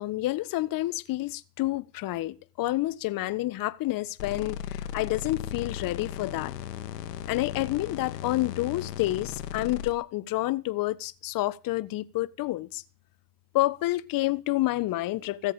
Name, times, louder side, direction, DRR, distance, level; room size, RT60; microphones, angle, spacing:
voice 1, 0.0-6.5 7.3-12.8 13.5-15.5, left 17 dB, 45° left, 1.5 m, -29 dB
sound 1, 4.2-9.9, left 9 dB, 80° left, 2.3 m, -36 dB
17.5 x 7.7 x 8.8 m
hypercardioid pair, 100°, 47 cm